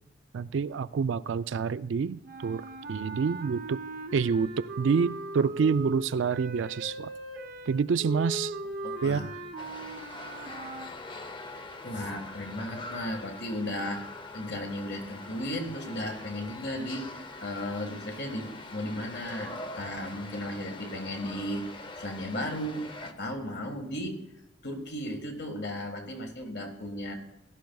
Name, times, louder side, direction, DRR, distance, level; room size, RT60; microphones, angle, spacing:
voice 1, 0.3-2.6 2.9-3.8 4.1-7.1 7.7-8.5 9.0-9.3, right 5 dB, 70° right, 15 dB, 0.4 m, -27 dB
sound 1, 2.2-10.9, right 1 dB, 45° right, 0.9 m, -39 dB
voice 2, 8.8-9.4 10.0-10.5 11.5-14.0 14.3-21.7 22.0-24.2 24.6-27.1, left 1 dB, 55° left, 4 dB, 1.7 m, -35 dB
sound 2, 9.6-23.1, left 2 dB, 25° left, 0.7 m, -43 dB
16.0 x 12.0 x 2.3 m, 0.88 s
head